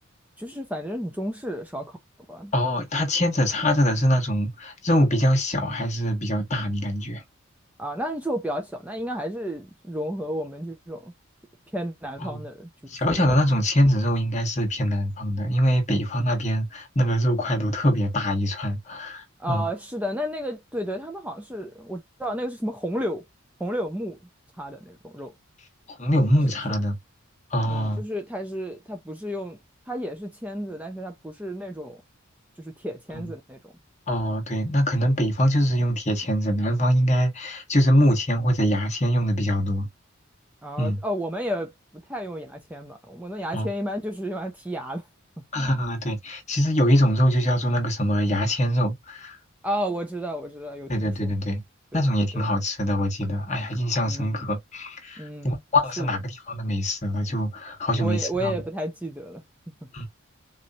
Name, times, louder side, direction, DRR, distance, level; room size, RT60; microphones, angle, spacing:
voice 1, 0.4-2.0 2.3-2.5 7.8-11.1 11.7-12.7 13.1-13.3 19.4-23.2 23.6-24.2 24.6-25.3 27.7-29.6 29.9-32.0 32.6-33.7 40.6-41.7 42.1-45.0 45.6-45.8 49.6-51.3 51.9-52.0 52.3-52.4 54.0-54.5 55.2-55.6 56.0-56.1 58.0-59.4, equal, 5° right, 0.6 m, -32 dB
voice 2, 2.5-7.2 12.2-12.4 12.9-19.7 26.0-27.0 27.5-28.0 33.1-33.2 34.1-39.9 40.8-41.0 43.5-43.7 45.5-49.4 50.9-51.6 51.9-58.6 59.9-60.0, equal, 35° left, 1.4 m, -23 dB
4.1 x 3.1 x 2.6 m
head